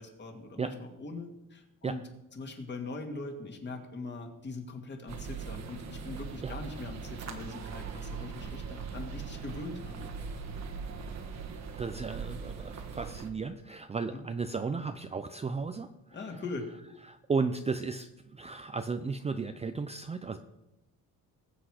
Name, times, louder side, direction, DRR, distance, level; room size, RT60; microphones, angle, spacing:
voice 1, 0.0-2.0 2.3-10.1 14.1-14.2 16.1-16.7, left 3 dB, 30° left, 3 dB, 2.3 m, -41 dB
sound 1, 5.1-13.3, right 5 dB, 50° right, 1.5 m, -40 dB
voice 2, 11.8-16.2 17.0-20.4, right 4 dB, 20° right, 8 dB, 0.5 m, -34 dB
20.5 x 8.1 x 4.9 m, 0.92 s
cardioid pair, 150°, 34 cm